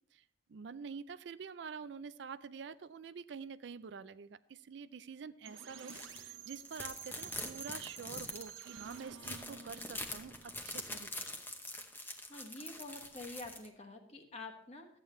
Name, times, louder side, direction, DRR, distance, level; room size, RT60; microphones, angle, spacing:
voice 1, 0.1-11.3, right 6 dB, 65° right, 14 dB, 0.4 m, -47 dB
sound 1, 5.5-11.3, right 8 dB, 90° right, 0.8 m, -52 dB
sound 2, 5.8-6.2 6.6-13.7, left 1 dB, 10° left, 0.8 m, -44 dB
voice 2, 12.3-14.9, left 2 dB, 35° left, 3 dB, 1.3 m, -47 dB
12.5 x 8.8 x 3.2 m, 0.67 s
head